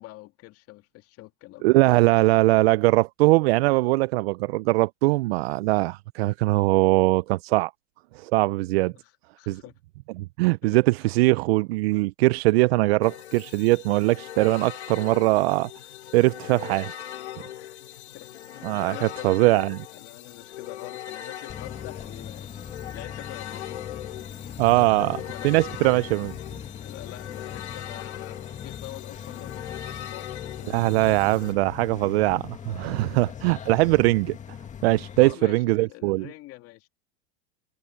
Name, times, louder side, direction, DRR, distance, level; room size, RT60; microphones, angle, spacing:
voice 1, 0.0-1.7 8.8-9.8 10.6-10.8 17.6-17.8 18.1-22.5 22.9-26.0 26.8-31.2 35.2-36.9, left 19 dB, 45° left, 2.4 m, -45 dB
voice 2, 1.6-7.7 8.2-8.9 9.5-9.6 10.2-15.7 16.1-16.9 18.6-19.7 24.6-25.2 25.4-26.3 30.7-34.4 34.8-36.3, right 21 dB, 65° right, 0.6 m, -21 dB
sound 1, 13.0-31.5, left 11 dB, 85° left, 2.5 m, -40 dB
sound 2, 21.5-35.3, left 8 dB, 20° left, 2.0 m, -40 dB
hypercardioid pair, 120°, 33 cm